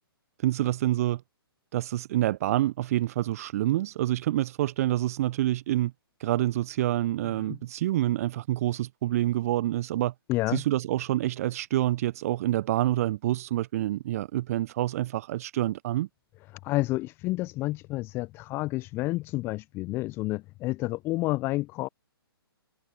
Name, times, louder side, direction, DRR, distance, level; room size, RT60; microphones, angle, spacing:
voice 1, 0.4-1.2 1.7-5.9 6.2-10.1 10.5-16.1, right 14 dB, 35° right, 0.5 m, -27 dB
voice 2, 10.3-10.6 16.6-21.9, left 19 dB, 15° left, 0.4 m, -30 dB
figure-of-eight pair, 125°, 13 cm